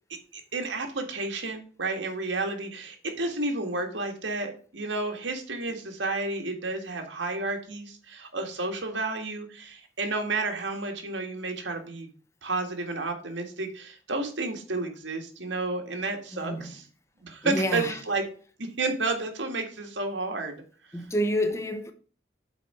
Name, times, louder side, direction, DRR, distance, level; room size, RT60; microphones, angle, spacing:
voice 1, 0.3-12.1 12.4-16.9 17.2-18.2 18.6-20.6, right 3 dB, 90° right, 1.8 m, -31 dB
voice 2, 16.3-16.7 17.4-18.0 20.9-21.9, equal, 15° left, 0.8 m, -28 dB
8.1 x 4.3 x 5.6 m
head